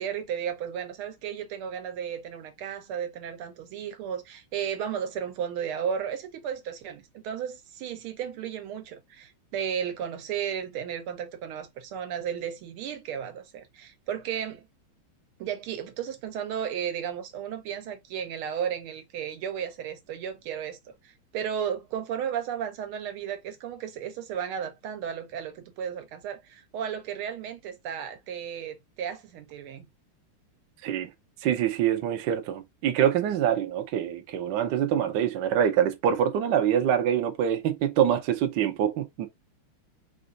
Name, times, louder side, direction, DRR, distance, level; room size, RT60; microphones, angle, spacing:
voice 1, 0.0-14.7 15.4-29.9, right 8 dB, 80° right, 1.7 m, -34 dB
voice 2, 31.4-39.3, right 9 dB, 65° right, 1.2 m, -25 dB
4.3 x 2.5 x 3.8 m
omnidirectional pair, 2.3 m